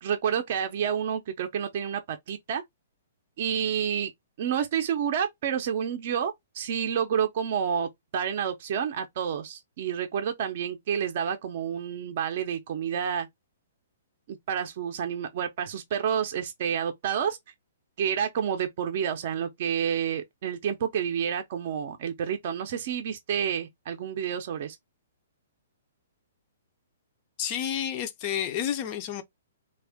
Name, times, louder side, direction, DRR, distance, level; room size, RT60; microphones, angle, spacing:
voice 1, 0.0-2.6 3.4-4.1 4.4-13.3 14.3-17.4 18.0-24.8, right 8 dB, 40° right, 0.5 m, -29 dB
voice 2, 27.4-29.2, left 9 dB, 25° left, 0.4 m, -30 dB
3.4 x 2.3 x 3.4 m
hypercardioid pair, 170°, 0 cm